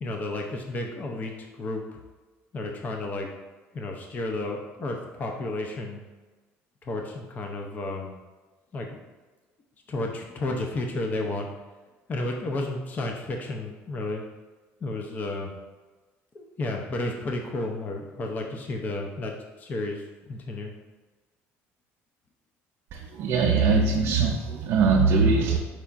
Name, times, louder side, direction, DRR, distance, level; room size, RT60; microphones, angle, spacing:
voice 1, 0.0-2.0 2.5-3.3 3.7-6.0 6.8-8.1 8.7-9.0 9.9-11.5 12.1-14.2 14.8-15.5 16.3-20.7, left 2 dB, 35° left, 2 dB, 0.5 m, -32 dB
voice 2, 22.9-25.6, right 4 dB, 55° right, 1 dB, 0.4 m, -22 dB
4.9 x 4.4 x 2.4 m, 1.3 s
cardioid pair, 120°, 5 cm